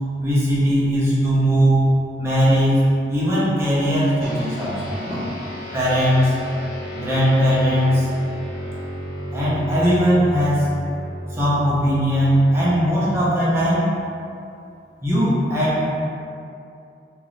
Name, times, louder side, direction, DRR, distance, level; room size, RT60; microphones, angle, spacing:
voice 1, 0.2-1.9 2.2-2.8 3.1-5.2 5.7-6.3 6.9-8.1 9.3-10.7 11.4-13.9 15.0-15.8, equal, 15° right, -9 dB, 0.7 m, -19 dB
sound 1, 4.2-13.9, equal, 55° left, 0.7 m, -33 dB
3.0 x 2.5 x 3.1 m, 2.6 s
head